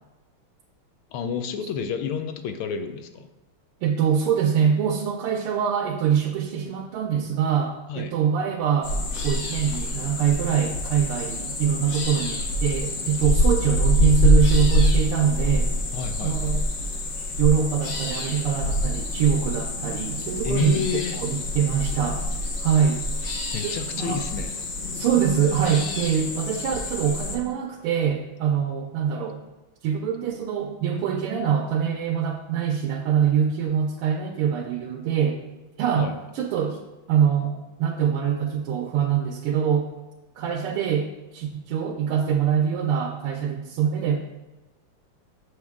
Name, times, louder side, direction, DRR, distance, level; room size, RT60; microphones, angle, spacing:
voice 1, 1.1-3.3 7.9-8.1 15.9-16.5 20.4-21.2 23.5-24.6 36.0-36.1, left 6 dB, 80° left, 8 dB, 1.5 m, -29 dB
voice 2, 3.8-9.0 9.2-15.7 16.2-16.6 17.4-22.2 22.6-23.1 23.6-24.2 24.9-29.4 29.8-35.4 35.8-36.8 37.1-37.5 37.8-39.9 40.3-44.2, right 8 dB, 85° right, 0 dB, 1.6 m, -24 dB
sound 1, 8.8-27.4, left 1 dB, 50° left, 1.1 m, -26 dB
6.4 x 6.3 x 3.6 m, 1.1 s
omnidirectional pair, 2.4 m